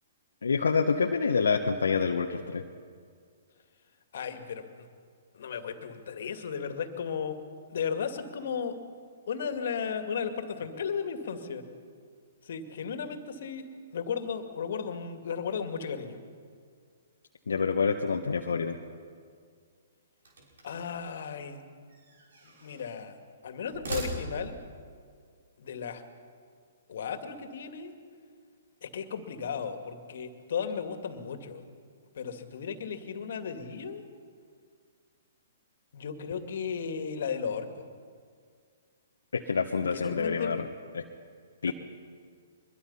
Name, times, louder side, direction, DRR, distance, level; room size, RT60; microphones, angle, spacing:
voice 1, 0.4-2.6 17.5-18.8 39.3-40.7 40.9-41.0 41.6-41.7, left 5 dB, 75° left, 2 dB, 1.3 m, -27 dB
voice 2, 4.1-4.9 5.3-7.4 7.7-8.8 9.3-11.6 12.4-13.7 13.9-16.2 20.6-21.6 22.4-23.2 23.4-24.6 25.6-26.0 26.9-27.9 28.8-31.6 32.1-34.0 35.9-37.8 39.9-40.6 41.7-41.8, left 6 dB, 60° left, 7 dB, 2.3 m, -35 dB
sound 1, 20.2-21.0 21.9-23.0 23.6-24.7, right 2 dB, 70° right, 6.2 m, -40 dB
24.0 x 22.0 x 5.7 m, 2.1 s
hypercardioid pair, 125°, 0 cm